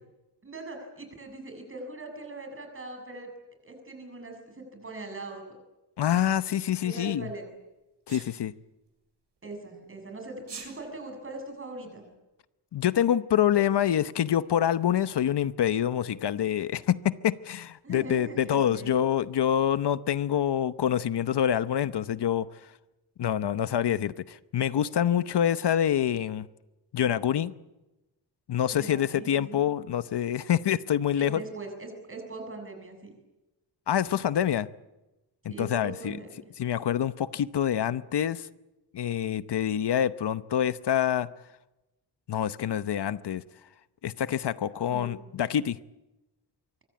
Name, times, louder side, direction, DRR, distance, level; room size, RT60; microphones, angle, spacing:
voice 1, 0.4-3.3 3.6-5.4 6.8-7.5 9.4-12.1 17.8-19.0 28.7-29.6 31.2-33.1 35.5-36.3 44.9-45.1, right 3 dB, 30° right, 4 dB, 7.0 m, -41 dB
voice 2, 6.0-7.3 8.1-8.5 12.7-22.5 23.2-26.5 26.9-27.5 28.5-31.4 33.9-34.7 35.4-36.2 36.6-38.5 38.9-41.3 42.3-43.4 44.0-45.8, left 10 dB, 75° left, 14 dB, 0.9 m, -26 dB
Sneeze, 8.1-8.3 10.4-10.7, right 5 dB, 90° right, 7.5 m, -41 dB
25.0 x 24.0 x 8.6 m, 1.0 s
wide cardioid pair, 180°, 41 cm